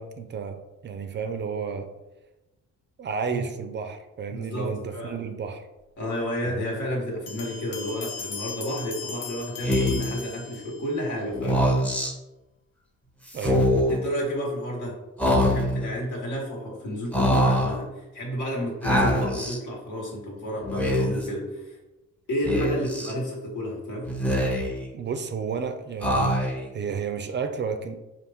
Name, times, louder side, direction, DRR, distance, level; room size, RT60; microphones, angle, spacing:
voice 1, 0.0-1.9 3.0-5.6 6.4-6.7 13.3-13.8 24.9-26.3 26.7-28.0, right 6 dB, 40° right, 7 dB, 0.4 m, -32 dB
voice 2, 4.3-5.1 6.0-11.6 13.9-15.0 15.2-21.8 22.3-24.1, equal, 75° left, -2 dB, 1.4 m, -31 dB
sound 1, 7.3-11.0, left 5 dB, 55° left, 0.6 m, -38 dB
Speech, 9.6-10.2 11.3-12.1 13.3-14.0 15.2-15.9 17.1-17.8 18.8-19.6 20.6-21.3 22.4-23.1 24.0-24.9 26.0-26.7, equal, 5° left, 0.6 m, -23 dB
4.2 x 2.5 x 3.5 m, 1.0 s
cardioid pair, 90°, 30 cm